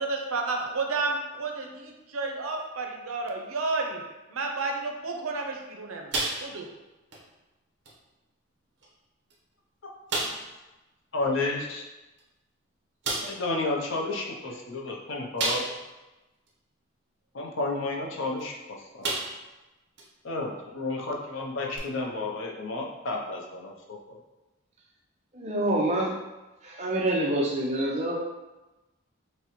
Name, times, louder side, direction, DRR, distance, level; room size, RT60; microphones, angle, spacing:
voice 1, 0.1-4.0 4.3-6.6, right 3 dB, 85° right, 2 dB, 0.6 m, -31 dB
sound 1, 6.1-6.8 7.1-7.3 7.8-8.0 8.8-8.9 9.3-9.4 10.1-10.5 12.2-12.3 13.0-13.4 15.4-16.0 16.5-16.6 18.4-18.6 19.0-19.5 20.0-20.1 21.7-21.8, right 2 dB, 55° right, 0.9 m, -31 dB
voice 2, 11.1-11.8 13.2-15.6 17.3-18.5 20.2-24.2, left 2 dB, 65° left, -1 dB, 0.6 m, -31 dB
voice 3, 25.3-26.1 26.6-28.2, right 1 dB, 30° right, -2 dB, 0.6 m, -26 dB
5.9 x 2.2 x 3.0 m, 1.1 s
head